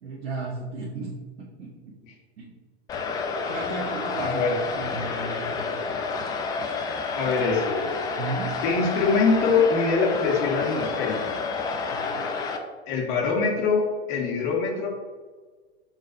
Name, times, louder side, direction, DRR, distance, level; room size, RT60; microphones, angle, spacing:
voice 1, 0.0-1.9 2.4-2.5 3.5-4.4 4.8-6.0 8.2-8.5 11.9-12.3, right 3 dB, 60° right, -4 dB, 1.5 m, -35 dB
sound 1, 2.9-12.6, left 4 dB, 10° left, 0.4 m, -29 dB
voice 2, 4.2-4.5 7.1-7.9 8.6-11.2 12.9-14.9, left 4 dB, 40° left, -1 dB, 1.7 m, -23 dB
5.5 x 3.1 x 5.5 m, 1.4 s
figure-of-eight pair, 105°, 33 cm